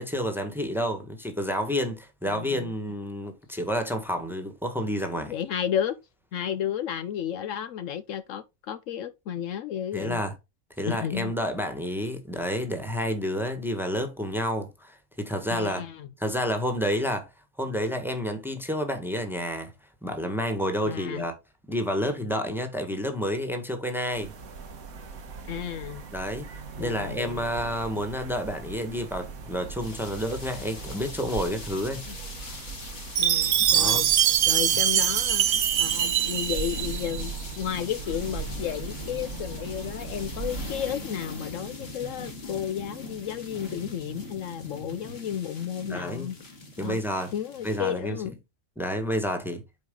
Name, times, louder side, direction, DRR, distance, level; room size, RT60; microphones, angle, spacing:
voice 1, 0.0-5.3 9.9-10.3 10.8-15.8 16.2-17.3 17.6-19.7 20.0-21.3 21.7-24.3 26.1-26.5 26.8-32.0 33.6-34.1 45.9-46.3 46.8-47.3 47.6-48.2 48.8-49.6, equal, ahead, 1.3 m, -29 dB
voice 2, 2.3-2.7 5.3-6.0 6.3-10.2 10.9-11.3 15.5-16.1 20.9-21.2 25.4-26.0 26.8-27.4 32.1-32.2 33.2-46.3 46.8-47.0 47.3-48.3, left 9 dB, 70° left, 1.0 m, -33 dB
sound 1, 24.1-41.1, right 4 dB, 85° right, 1.6 m, -39 dB
sound 2, 29.8-47.8, left 2 dB, 45° left, 2.3 m, -41 dB
Chime, 33.2-37.3, right 10 dB, 60° right, 0.6 m, -23 dB
8.4 x 4.8 x 3.7 m
omnidirectional pair, 1.4 m